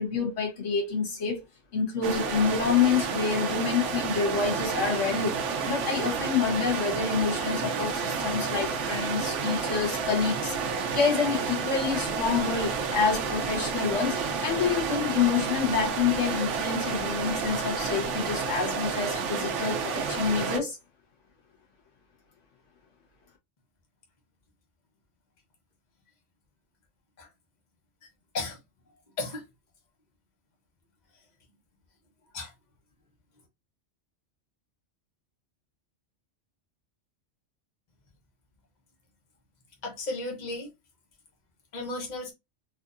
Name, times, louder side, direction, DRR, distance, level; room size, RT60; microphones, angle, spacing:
voice 1, 0.0-1.4 1.7-20.8, left 6 dB, 90° left, 1.5 m, -28 dB
sound 1, 2.0-20.6, right 5 dB, 80° right, 1.0 m, -30 dB
voice 2, 39.8-40.7 41.7-42.3, left 2 dB, 40° left, 1.1 m, -34 dB
4.1 x 2.6 x 2.5 m
omnidirectional pair, 1.2 m